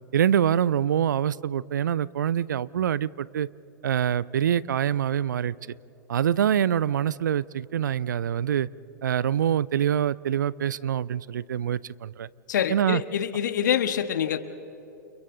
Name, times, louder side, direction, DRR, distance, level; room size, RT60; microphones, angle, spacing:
voice 1, 0.1-3.5 3.8-5.5 6.1-8.7 9.0-12.3 12.7-13.0, right 9 dB, 75° right, 22 dB, 0.5 m, -25 dB
voice 2, 12.5-14.4, left 9 dB, 70° left, 11 dB, 1.3 m, -25 dB
30.0 x 29.5 x 3.8 m, 2.9 s
figure-of-eight pair, 100°, 10 cm